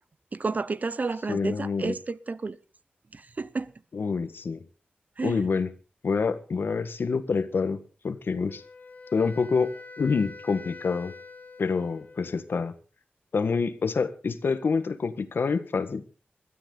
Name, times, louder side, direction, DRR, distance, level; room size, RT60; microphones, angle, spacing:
voice 1, 0.3-2.6 3.1-3.7 5.2-5.5, right 3 dB, 45° right, 0.7 m, -31 dB
voice 2, 1.3-2.0 3.9-4.6 5.2-5.7 6.0-7.8 8.0-8.6 9.1-11.1 11.6-12.7 13.3-16.0, left 5 dB, 80° left, 1.5 m, -27 dB
Wind instrument woodwind instrument, 8.5-12.5, left 3 dB, 55° left, 1.9 m, -46 dB
21.5 x 13.0 x 3.9 m
wide cardioid pair, 115°, 4 cm